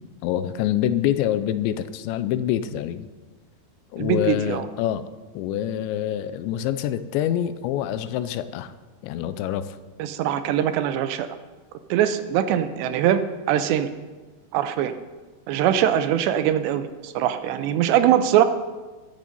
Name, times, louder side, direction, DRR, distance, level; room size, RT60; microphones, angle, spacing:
voice 1, 0.2-3.1 3.9-5.0 5.3-8.7 9.0-9.8, left 11 dB, 85° left, 12 dB, 3.0 m, -26 dB
voice 2, 4.0-4.7 10.0-11.3 11.9-13.2 13.5-13.9 14.5-14.9 15.5-18.5, right 10 dB, 85° right, 10 dB, 2.9 m, -22 dB
21.0 x 7.9 x 5.4 m, 1.3 s
omnidirectional pair, 5.1 m